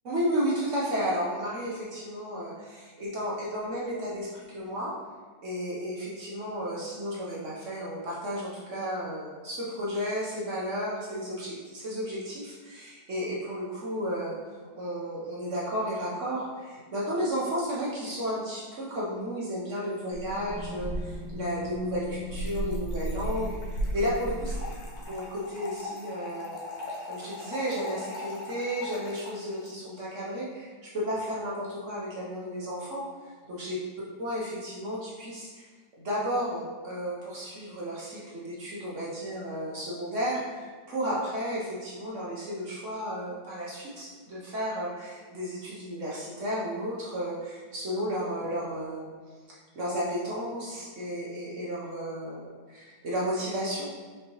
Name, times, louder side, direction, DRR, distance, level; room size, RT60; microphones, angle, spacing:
voice 1, 0.0-5.0 5.4-23.6 23.9-24.5 25.1-26.6 27.1-33.8 34.2-35.7 36.0-49.1 49.5-53.9, equal, 55° right, -6 dB, 0.9 m, -33 dB
sound 1, 20.1-25.1, right 1 dB, 75° right, 1.1 m, -34 dB
Trickle dribble / Fill (with liquid), 22.4-29.7, left 3 dB, 85° left, 1.7 m, -41 dB
5.4 x 2.7 x 2.9 m, 1.5 s
omnidirectional pair, 2.0 m